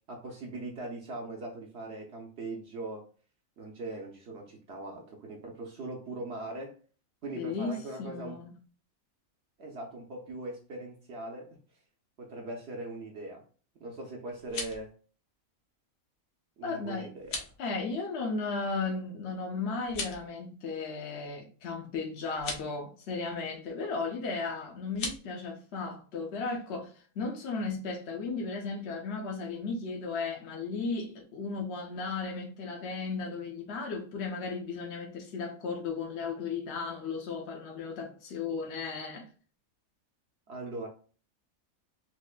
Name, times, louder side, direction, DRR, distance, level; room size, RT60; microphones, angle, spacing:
voice 1, 0.1-3.0 3.6-6.8 7.2-8.4 9.6-11.6 12.2-13.4 13.8-14.9 16.6-17.4 40.5-40.9, right 2 dB, 60° right, 0.8 m, -40 dB
voice 2, 7.3-8.5 16.6-17.1 17.6-39.3, left 4 dB, 60° left, 0.8 m, -35 dB
sound 1, 14.3-14.9 17.2-17.6 19.8-20.3 22.3-22.7 24.9-25.2, left 4 dB, 85° left, 1.4 m, -37 dB
4.3 x 2.5 x 2.3 m
omnidirectional pair, 1.5 m